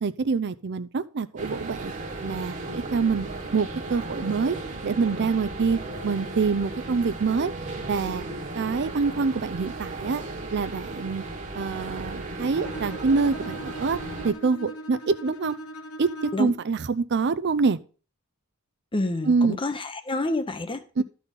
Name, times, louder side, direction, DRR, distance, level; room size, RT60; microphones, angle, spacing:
voice 1, 0.0-1.9 2.2-3.3 3.5-4.6 4.8-7.5 7.9-8.2 8.6-10.2 10.5-11.2 11.5-14.0 14.2-15.6 16.0-16.1 16.4-17.8 19.3-19.6 21.0-21.1, right 4 dB, 55° right, 0.5 m, -25 dB
sound 1, 1.4-14.3, right 2 dB, 35° right, 1.5 m, -35 dB
Bowed string instrument, 12.5-16.6, right 1 dB, 90° left, 1.1 m, -39 dB
voice 2, 18.9-21.0, left 2 dB, 25° left, 0.7 m, -28 dB
12.5 x 4.2 x 5.2 m
head